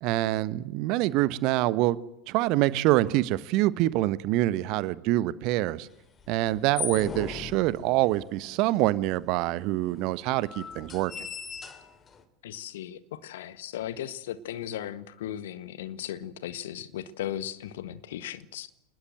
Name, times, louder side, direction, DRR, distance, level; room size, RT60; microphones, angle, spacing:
voice 1, 0.0-2.0 2.3-5.9 6.3-11.1, right 16 dB, 45° right, 1.3 m, -25 dB
sound 1, 6.2-8.3 9.1-9.2 9.3-9.4 10.1-12.2, left 5 dB, 25° left, 3.0 m, -38 dB
voice 2, 12.4-18.7, left 11 dB, 60° left, 1.7 m, -37 dB
28.5 x 20.5 x 7.8 m
figure-of-eight pair, 85°, 0 cm